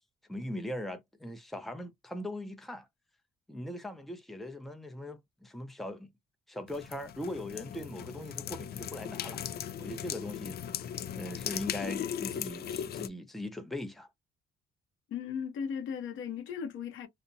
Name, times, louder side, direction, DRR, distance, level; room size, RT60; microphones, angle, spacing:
voice 1, 0.3-2.9 3.5-6.1 6.5-9.4 9.8-10.6 11.1-14.1, left 1 dB, ahead, 0.6 m, -40 dB
sound 1, 6.7-13.1, left 9 dB, 55° left, 0.4 m, -38 dB
voice 2, 15.1-17.1, left 7 dB, 80° left, 0.7 m, -36 dB
2.6 x 2.1 x 2.6 m
cardioid pair, 90°, 20 cm